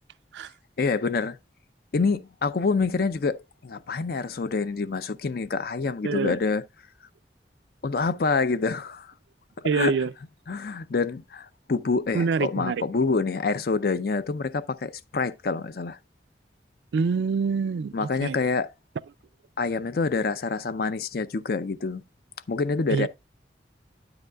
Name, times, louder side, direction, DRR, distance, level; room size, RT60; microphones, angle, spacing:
voice 1, 0.8-1.4 1.9-6.6 7.8-9.1 9.7-10.0 10.5-16.0 17.9-18.7 19.6-22.0 22.5-23.1, left 4 dB, 55° left, 0.5 m, -26 dB
voice 2, 6.0-6.4 9.6-10.1 12.1-12.8 16.9-18.4 22.9-23.1, right 5 dB, 80° right, 0.4 m, -25 dB
9.2 x 7.9 x 2.3 m
head